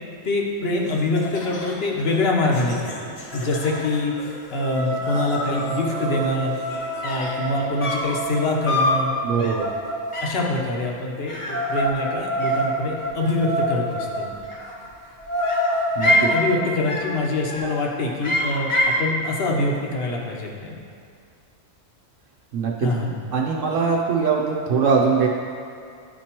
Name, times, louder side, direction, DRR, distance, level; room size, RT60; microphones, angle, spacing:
voice 1, 0.2-6.6 7.0-9.1 10.2-14.3 16.0-20.8 22.8-23.1, left 2 dB, 55° left, -1 dB, 1.0 m, -25 dB
Laughter, 0.9-7.7, left 2 dB, 75° left, 1.2 m, -37 dB
sound 1, 2.3-2.4 2.6-3.0 3.3-10.2 11.5-14.3 14.7-14.8 15.1-16.5, right 1 dB, 25° right, 0.4 m, -28 dB
sound 2, 7.0-7.4 7.8-8.2 8.7-9.0 9.4-9.7 10.1-10.5 11.3-12.1 12.4-13.1 14.3-15.0 15.4-16.4 16.9-17.2 17.5-17.8 18.2-19.0, left 1 dB, 35° left, 0.6 m, -25 dB
voice 2, 9.2-9.6 16.0-16.3 22.5-25.3, right 5 dB, 75° right, -1 dB, 0.9 m, -22 dB
10.0 x 4.4 x 2.9 m, 2.4 s
omnidirectional pair, 1.3 m